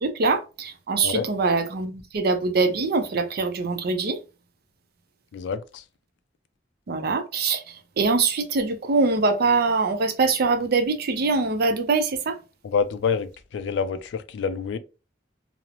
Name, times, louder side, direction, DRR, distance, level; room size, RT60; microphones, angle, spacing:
voice 1, 0.0-4.2 6.9-7.6 8.0-12.3, right 3 dB, 60° right, 0.5 m, -23 dB
voice 2, 5.3-5.8 12.6-14.8, left 6 dB, 75° left, 0.3 m, -27 dB
2.9 x 2.0 x 2.4 m
head